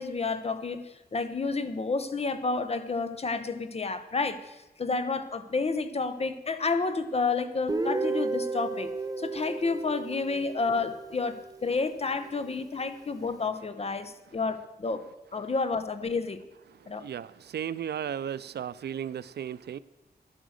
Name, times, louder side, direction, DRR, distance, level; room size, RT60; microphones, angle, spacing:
voice 1, 0.0-8.9 9.2-15.0 15.3-16.4 16.9-17.1, left 4 dB, 40° left, 11 dB, 0.8 m, -30 dB
Guitar, 7.7-11.5, right 3 dB, 20° right, 0.7 m, -33 dB
voice 2, 16.7-19.8, right 9 dB, 80° right, 18 dB, 0.4 m, -35 dB
11.5 x 8.9 x 6.4 m, 1.0 s
wide cardioid pair, 130°, 17 cm